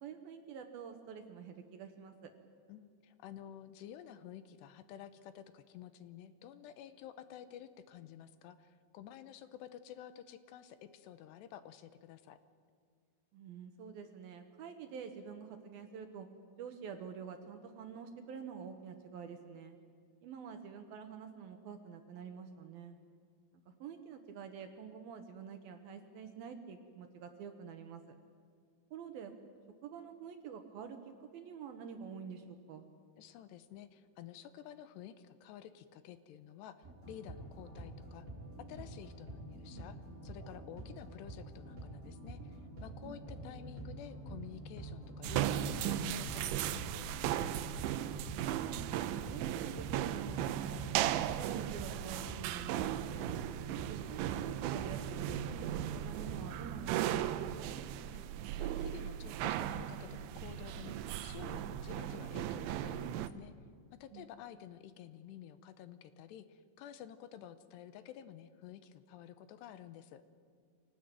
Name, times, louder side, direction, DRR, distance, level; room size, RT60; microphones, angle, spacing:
voice 1, 0.0-2.3 13.3-16.3 16.6-19.8 20.2-23.0 23.8-28.0 28.9-29.3 29.8-31.0 31.3-32.9 43.0-43.2 48.3-48.7 49.0-53.3 53.9-57.8 64.1-64.3, right 7 dB, 70° right, 6 dB, 2.6 m, -48 dB
voice 2, 2.7-12.4 33.2-38.3 38.7-40.0 40.2-47.6 58.1-63.5 64.0-70.2, left 10 dB, 80° left, 12 dB, 2.8 m, -51 dB
sound 1, 36.8-56.8, right 2 dB, 20° right, 4.6 m, -47 dB
sound 2, 45.2-63.3, right 11 dB, 85° right, 3.1 m, -37 dB
24.5 x 18.5 x 9.1 m, 2.2 s
omnidirectional pair, 5.3 m